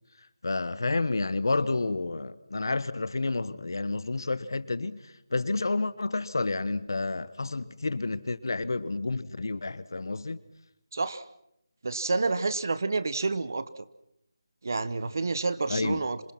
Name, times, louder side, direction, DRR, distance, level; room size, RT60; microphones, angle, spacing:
voice 1, 0.4-5.0 5.3-10.4 15.7-16.0, left 3 dB, 70° left, 1.3 m, -30 dB
voice 2, 10.9-11.3 11.8-13.8 14.6-16.2, right 3 dB, 50° right, 1.1 m, -29 dB
26.5 x 23.5 x 6.0 m
figure-of-eight pair, 175°, 2 cm